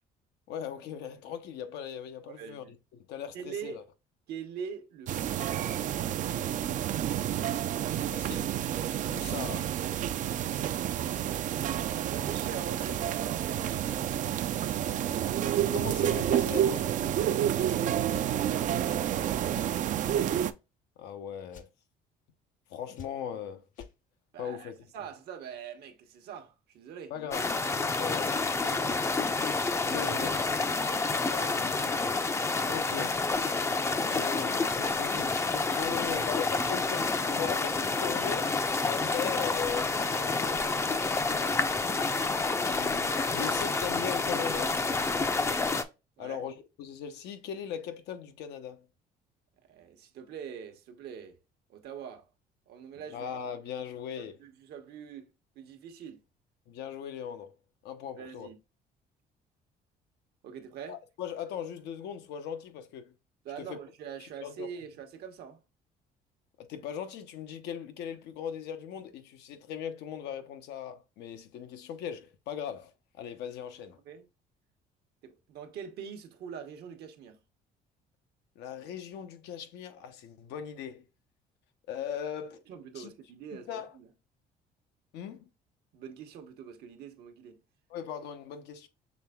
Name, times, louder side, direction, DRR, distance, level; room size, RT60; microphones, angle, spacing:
voice 1, 0.5-2.6 2.9-3.8 8.1-8.5 9.1-9.7 15.7-17.2 21.0-21.7 22.7-23.6 24.4-24.8 27.1-27.5 28.0-28.3 29.8-30.5 31.3-32.2 32.7-33.2 34.0-38.5 38.8-40.9 42.5-44.8 46.2-48.9 53.1-54.4 56.7-57.5 57.8-58.5 60.9-63.1 63.6-63.8 64.2-64.7 66.6-74.0 78.6-81.1 81.9-82.6 82.9-83.1 83.5-83.9 85.1-85.5 87.9-88.9, left 8 dB, 85° left, 0.7 m, -39 dB
voice 2, 2.4-2.7 3.3-3.8 4.3-6.5 12.0-14.1 17.4-19.8 24.3-27.1 28.0-28.2 28.6-29.0 30.8-31.6 35.9-37.4 41.4-42.0 46.2-46.4 49.6-51.4 51.7-52.3 52.7-53.3 54.2-56.2 58.2-58.6 60.4-61.0 63.4-65.6 74.0-74.3 75.2-77.4 82.7-84.1 85.9-87.6, right 7 dB, 70° right, 0.9 m, -44 dB
sound 1, 5.1-20.5, right 11 dB, 50° right, 0.4 m, -29 dB
sound 2, 17.5-17.7 18.1-18.3 19.5-19.7 21.5-21.7 22.9-23.4 23.7-23.9, left 6 dB, 50° left, 0.7 m, -47 dB
sound 3, 27.3-45.8, left 3 dB, 15° left, 0.4 m, -29 dB
6.1 x 3.4 x 2.2 m
cardioid pair, 110°, 17 cm